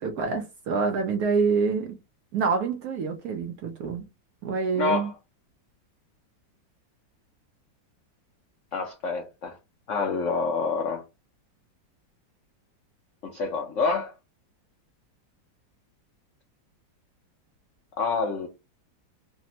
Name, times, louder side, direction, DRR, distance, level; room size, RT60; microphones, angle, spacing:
voice 1, 0.0-2.0 2.3-4.0 4.4-5.1, right 5 dB, 70° right, 0.9 m, -26 dB
voice 2, 4.8-5.1 8.7-9.6 9.9-11.0 13.3-14.1 18.0-18.5, left 4 dB, 90° left, 0.6 m, -27 dB
3.4 x 2.0 x 2.7 m
omnidirectional pair, 2.0 m